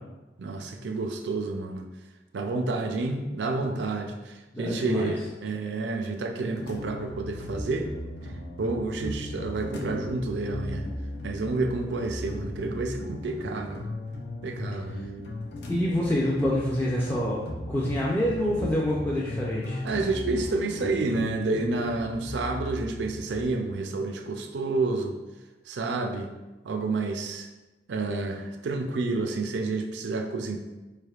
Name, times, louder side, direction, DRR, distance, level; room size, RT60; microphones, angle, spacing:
voice 1, 0.4-1.8 2.3-7.9 8.6-10.9 11.2-13.8 14.4-15.0 19.8-25.2 25.7-26.3 26.6-27.5 27.9-30.6, right 3 dB, 75° right, 4 dB, 0.4 m, -29 dB
voice 2, 4.5-5.1 15.7-17.4 17.7-19.8, left 1 dB, 10° left, -6 dB, 0.4 m, -26 dB
sound 1, 6.5-23.4, left 1 dB, 65° left, 0.6 m, -36 dB
4.7 x 3.3 x 2.3 m, 1.1 s
head